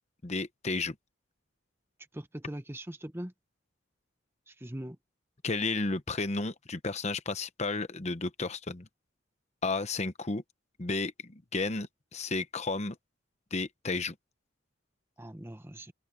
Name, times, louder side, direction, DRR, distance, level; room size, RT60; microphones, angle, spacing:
voice 1, 0.2-0.9 5.4-8.9 9.6-10.4 10.8-13.0 13.5-14.1, left 3 dB, 35° left, 0.9 m, -32 dB
voice 2, 2.1-3.3 4.5-5.0 15.2-15.9, right 1 dB, 10° right, 1.1 m, -41 dB
open air
head